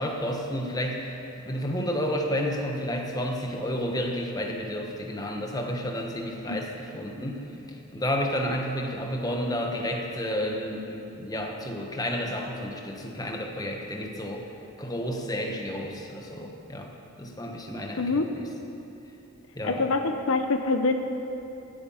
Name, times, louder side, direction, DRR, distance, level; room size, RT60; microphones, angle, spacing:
voice 1, 0.0-7.4 7.7-14.4 14.8-16.9 17.2-18.5 19.5-19.8, equal, 15° left, 1 dB, 1.1 m, -31 dB
voice 2, 18.0-18.3 19.6-20.9, left 3 dB, 70° left, 6 dB, 0.7 m, -25 dB
16.5 x 8.8 x 5.6 m, 2.8 s
head